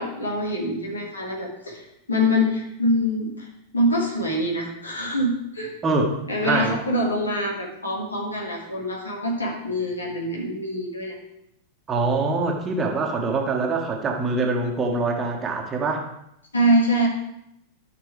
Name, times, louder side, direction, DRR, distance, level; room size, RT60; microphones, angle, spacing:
voice 1, 0.0-1.8 2.1-3.5 3.7-5.7 6.3-11.2 16.5-17.1, equal, 75° left, -1 dB, 2.2 m, -24 dB
voice 2, 5.8-6.8 11.9-16.0, right 3 dB, 25° right, 1 dB, 1.5 m, -24 dB
13.0 x 6.1 x 3.4 m, 0.79 s
figure-of-eight pair, 90°, 0 cm